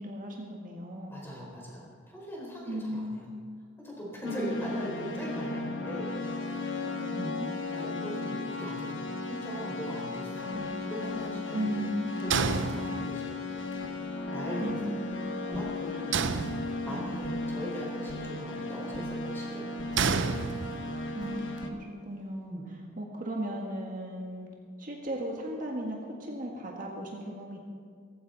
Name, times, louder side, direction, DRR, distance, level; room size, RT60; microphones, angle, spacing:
voice 1, 0.0-1.2 2.7-3.2 4.3-4.8 6.8-7.5 10.5-10.7 11.5-12.0 14.6-15.2 15.9-16.0 16.8-17.1 21.1-24.5 24.8-27.6, equal, 45° right, -1 dB, 1.6 m, -37 dB
voice 2, 1.1-3.2 3.8-7.0 7.7-13.7 14.3-14.9 15.4-16.2 16.8-20.3 22.5-22.6, equal, 10° left, -4 dB, 4.7 m, -40 dB
sound 1, 4.2-21.7, left 2 dB, 75° left, 1.4 m, -35 dB
sound 2, 12.3-13.4 16.1-17.2 20.0-21.1, right 5 dB, 70° right, 0.7 m, -30 dB
18.0 x 15.0 x 4.0 m, 2.1 s
head